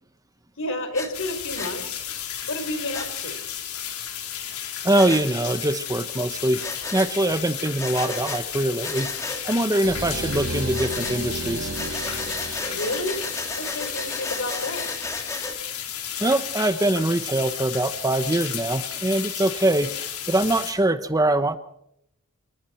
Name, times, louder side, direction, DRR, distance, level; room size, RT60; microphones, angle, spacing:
voice 1, 0.6-2.0 2.5-3.4 12.7-13.2 13.6-14.9, left 1 dB, 65° left, 7 dB, 4.5 m, -30 dB
Breathing, 0.9-1.1 1.6-1.7 2.9-3.1 4.9-5.2 6.6-7.1 7.8-8.4 8.8-9.4 10.7-11.2 11.7-15.6, left 2 dB, 15° left, 2.6 m, -33 dB
sound 1, 1.1-20.7, left 9 dB, 85° left, 4.1 m, -33 dB
voice 2, 4.8-6.6 6.9-9.1 9.4-11.7 16.2-21.6, right 1 dB, 15° right, 11 dB, 0.9 m, -23 dB
sound 2, 9.8-14.8, right 2 dB, 80° right, 5.2 m, -34 dB
27.5 x 21.5 x 4.5 m, 0.75 s
head